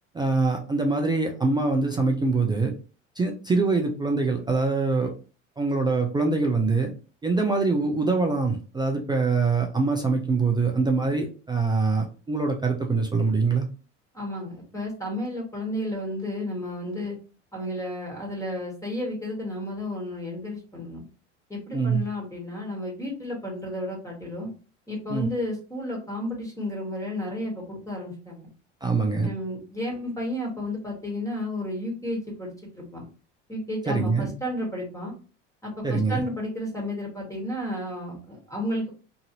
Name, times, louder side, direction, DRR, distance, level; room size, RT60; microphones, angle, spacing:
voice 1, 0.1-2.7 3.2-5.1 5.6-6.9 7.2-13.7 21.7-22.0 25.1-25.3 28.8-29.3 33.9-34.3 35.8-36.2, right 3 dB, 15° right, 2 dB, 0.3 m, -24 dB
voice 2, 14.1-17.2 17.5-21.0 21.5-24.5 24.9-28.5 29.2-33.0 33.5-35.1 35.6-38.9, left 1 dB, 10° left, -2 dB, 1.3 m, -32 dB
2.9 x 2.5 x 2.7 m, 0.36 s
hypercardioid pair, 80°, 37 cm